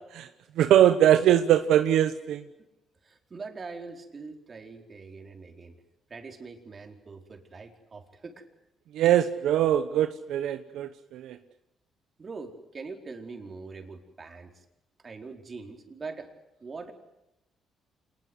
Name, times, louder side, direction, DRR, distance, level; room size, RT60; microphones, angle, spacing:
voice 1, 0.6-2.4 8.9-11.4, right 11 dB, 85° right, 9 dB, 1.1 m, -22 dB
voice 2, 3.0-5.7 6.1-8.5 12.2-14.6 15.0-16.3 16.6-16.9, right 4 dB, 35° right, 4 dB, 4.6 m, -42 dB
27.0 x 20.5 x 8.1 m, 0.90 s
cardioid pair, 90°, 0 cm